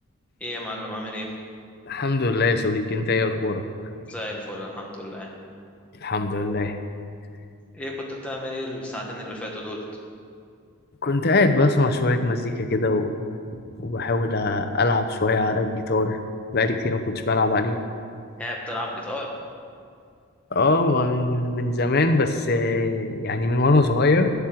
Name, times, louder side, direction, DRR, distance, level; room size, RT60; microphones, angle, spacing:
voice 1, 0.4-1.3 4.0-5.3 7.7-9.8 18.4-19.3, left 1 dB, 5° left, -2 dB, 1.4 m, -33 dB
voice 2, 1.9-3.7 6.0-6.8 11.0-13.1 13.8-16.2 16.5-17.8 20.5-24.3, left 2 dB, 45° left, 6 dB, 0.7 m, -22 dB
9.5 x 8.2 x 7.5 m, 2.3 s
head